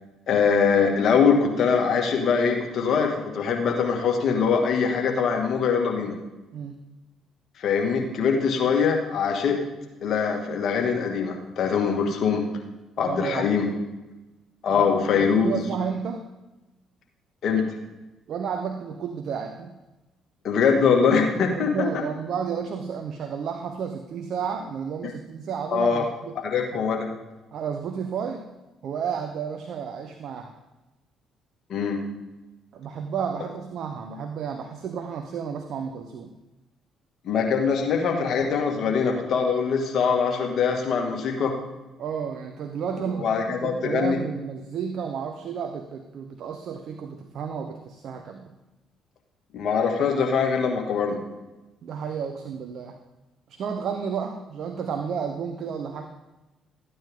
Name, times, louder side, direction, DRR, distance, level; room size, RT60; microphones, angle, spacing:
voice 1, 0.3-6.1 7.6-9.6 10.0-12.4 13.0-13.7 14.6-15.6 17.4-17.6 20.4-21.9 25.0-25.1 25.7-26.0 26.4-27.1 31.7-32.0 37.2-41.5 43.1-44.2 49.5-51.2, left 6 dB, 60° left, 1 dB, 2.1 m, -23 dB
voice 2, 13.0-13.4 14.8-14.9 15.4-16.2 18.3-19.7 21.6-26.3 27.5-28.5 28.8-30.5 32.7-36.3 42.0-48.5 51.8-53.0 53.5-56.1, right 7 dB, 60° right, 6 dB, 0.9 m, -32 dB
14.0 x 9.4 x 3.8 m, 1.1 s
hypercardioid pair, 55°, 0 cm